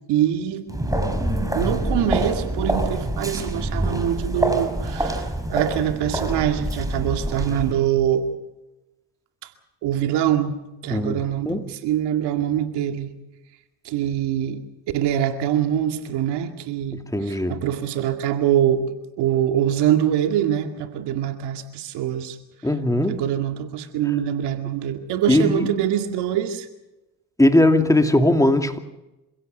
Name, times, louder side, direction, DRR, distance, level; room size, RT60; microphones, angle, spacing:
voice 1, 0.1-0.6 1.5-8.3 9.8-10.6 10.8-13.1 13.8-14.6 14.9-18.8 19.2-22.4 23.1-26.7, right 10 dB, 85° right, 6 dB, 2.2 m, -24 dB
sound 1, 0.7-7.7, right 1 dB, 10° right, 4.9 m, -25 dB
voice 2, 10.9-11.7 16.9-17.6 22.6-23.2 25.3-25.7 27.4-28.8, left 1 dB, 10° left, 6 dB, 2.6 m, -19 dB
27.5 x 16.5 x 6.6 m, 0.98 s
supercardioid pair, 70°, 40 cm